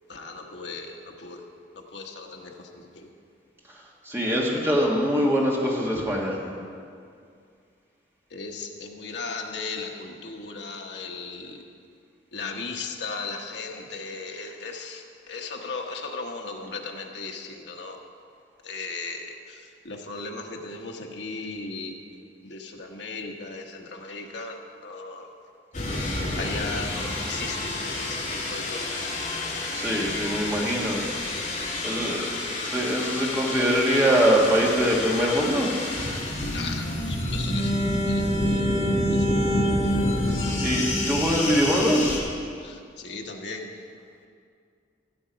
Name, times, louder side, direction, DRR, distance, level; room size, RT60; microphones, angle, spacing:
voice 1, 0.1-0.9 1.2-1.4 1.9-2.5 8.3-11.5 12.3-15.0 15.3-18.0 18.6-19.2 19.9-21.9 22.5-24.5 24.8-25.3 26.4-28.2 28.5-29.1 36.5-37.7 38.1-38.2 38.5-38.6 43.0-43.7, left 4 dB, 65° left, 2 dB, 1.1 m, -36 dB
voice 2, 4.1-6.4 29.7-31.0 31.8-32.3 32.7-35.7 40.6-42.2, equal, 15° right, -3 dB, 1.5 m, -23 dB
sound 1, 25.7-42.2, left 1 dB, 40° left, 2.2 m, -28 dB
14.5 x 7.7 x 5.2 m, 2.3 s
head